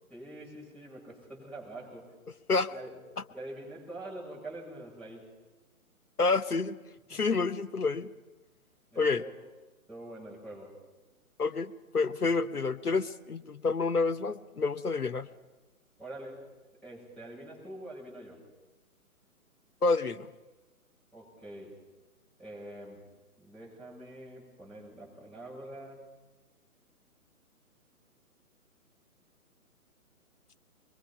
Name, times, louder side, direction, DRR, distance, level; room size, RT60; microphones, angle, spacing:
voice 1, 0.1-2.1 2.7-3.0 3.3-5.3 7.1-7.3 8.9-9.3 9.9-10.8 16.0-16.4 16.8-18.4 21.1-21.8 22.4-23.0 23.4-26.0, right 1 dB, ahead, -7 dB, 7.4 m, -45 dB
voice 2, 6.2-6.8 7.1-8.1 9.0-9.2 11.4-15.3 19.8-20.3, left 4 dB, 90° left, 11 dB, 1.1 m, -28 dB
24.0 x 22.5 x 5.8 m, 1.2 s
figure-of-eight pair, 135°, 44 cm